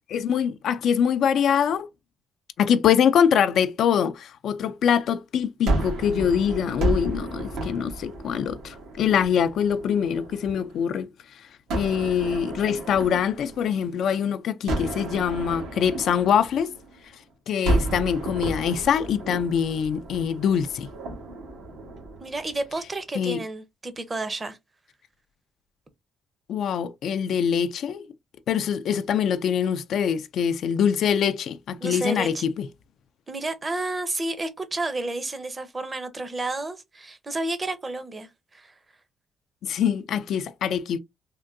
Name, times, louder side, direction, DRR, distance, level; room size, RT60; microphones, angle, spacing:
voice 1, 0.1-1.9 2.6-11.1 11.3-11.5 11.7-16.7 17.5-20.9 23.1-23.4 26.5-28.1 28.5-32.7 39.6-41.0, left 8 dB, 70° left, 0.3 m, -24 dB
Gunshot gunfire, 5.7-10.8 11.7-14.1 14.7-17.1 17.6-22.9, right 2 dB, 90° right, 1.3 m, -32 dB
voice 2, 22.2-24.6 31.8-32.4 33.3-38.7, right 2 dB, 25° right, 0.6 m, -31 dB
3.6 x 2.2 x 2.5 m
cardioid pair, 90°, 0 cm